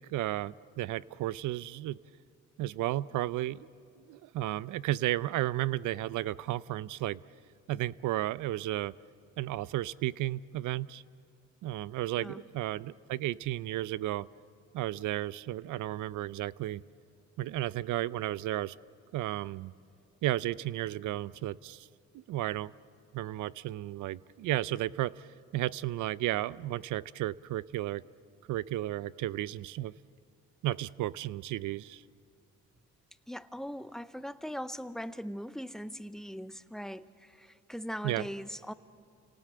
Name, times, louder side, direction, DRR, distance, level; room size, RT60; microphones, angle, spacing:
voice 1, 0.1-2.0 2.6-3.7 4.1-7.2 7.7-8.9 9.4-11.0 11.6-14.3 14.7-16.8 17.4-18.7 19.1-19.7 20.2-21.9 22.1-22.7 23.1-25.3 25.5-28.0 28.5-29.9 30.6-32.0 38.0-38.3, right 15 dB, 80° right, 20 dB, 0.5 m, -33 dB
voice 2, 12.2-12.5 33.3-38.7, equal, ahead, 13 dB, 0.7 m, -40 dB
28.0 x 18.5 x 7.7 m, 2.4 s
cardioid pair, 90°, 30 cm